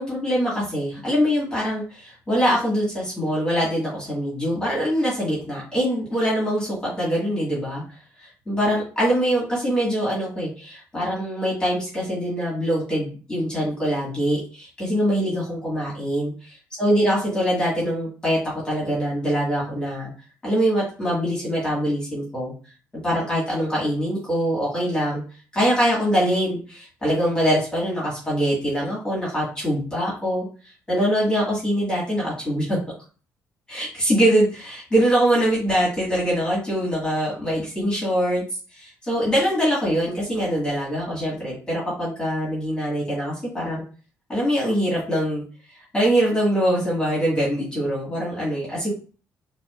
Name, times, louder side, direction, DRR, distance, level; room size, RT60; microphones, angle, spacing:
voice 1, 0.0-7.8 8.2-18.4 18.6-20.1 20.4-22.5 23.0-25.2 25.5-30.4 30.9-32.8 33.7-38.4 38.7-43.8 44.3-45.4 45.9-48.9, equal, 15° left, -7 dB, 1.9 m, -23 dB
5.8 x 2.6 x 2.5 m, 0.38 s
cardioid pair, 135°, 6 cm